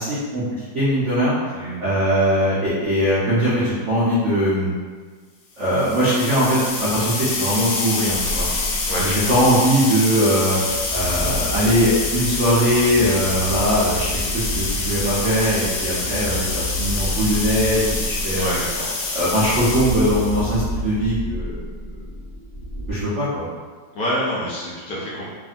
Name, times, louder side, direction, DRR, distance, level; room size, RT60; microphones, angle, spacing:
voice 1, 0.0-1.3 1.8-4.7 5.6-8.5 9.0-10.6 10.9-18.5 19.1-21.6 22.9-23.4, equal, 65° right, -11 dB, 0.7 m, -20 dB
voice 2, 1.5-1.9 8.9-9.3 18.3-18.9 23.9-25.3, equal, 65° left, -7 dB, 1.0 m, -27 dB
sound 1, 5.7-20.6, left 3 dB, 85° left, 1.3 m, -26 dB
sound 2, 8.0-9.8 10.4-22.9, equal, 25° left, 1.0 m, -30 dB
2.8 x 2.5 x 2.4 m, 1.5 s
omnidirectional pair, 1.9 m